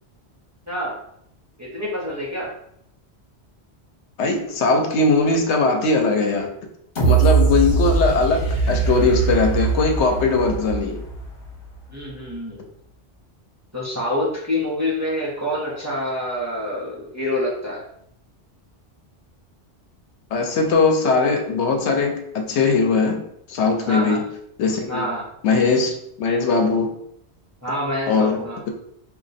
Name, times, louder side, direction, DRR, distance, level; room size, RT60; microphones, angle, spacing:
voice 1, 1.6-2.5 11.9-12.6 13.7-17.8 23.8-24.2 24.9-25.3 27.6-28.6, left 1 dB, 15° right, -6 dB, 0.8 m, -26 dB
voice 2, 4.2-6.5 7.0-11.0 20.3-23.2 23.5-24.2 24.6-25.1 25.4-27.0 28.1-28.7, left 3 dB, 80° left, 4 dB, 0.9 m, -20 dB
sound 1, 7.0-11.8 12.3-12.4, right 5 dB, 50° left, 1.2 m, -21 dB
2.9 x 2.3 x 4.0 m, 0.72 s
omnidirectional pair, 1.1 m